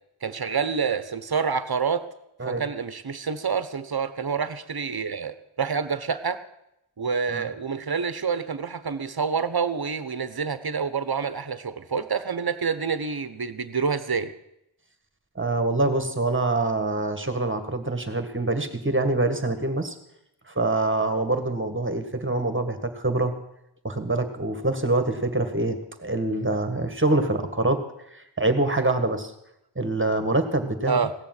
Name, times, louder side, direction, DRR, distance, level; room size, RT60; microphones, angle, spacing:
voice 1, 0.2-2.1 2.4-6.4 7.0-14.3 30.9-31.1, right 5 dB, 50° right, 12 dB, 1.1 m, -27 dB
voice 2, 15.4-20.0 20.5-23.4 23.8-27.8 28.1-29.3 29.8-31.0, right 2 dB, 25° right, 8 dB, 1.8 m, -25 dB
16.5 x 7.0 x 9.7 m, 0.83 s
wide cardioid pair, 50°, 48 cm